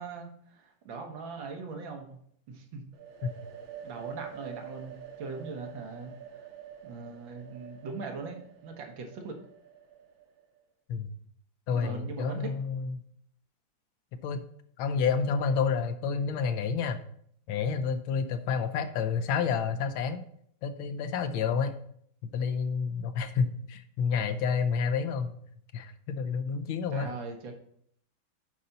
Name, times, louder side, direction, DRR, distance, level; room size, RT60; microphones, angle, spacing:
voice 1, 0.0-2.2 2.5-2.8 3.8-6.5 6.8-9.4 11.7-12.5 26.9-27.5, right 4 dB, 70° right, 3 dB, 1.9 m, -40 dB
sound 1, 2.9-10.6, right 9 dB, 90° right, 1.7 m, -47 dB
voice 2, 11.7-13.0 14.1-14.4 14.8-17.0 17.5-20.2 20.6-21.7 22.2-25.3 25.7-27.1, left 6 dB, 85° left, 9 dB, 1.5 m, -29 dB
8.1 x 5.6 x 4.0 m, 0.66 s
omnidirectional pair, 2.1 m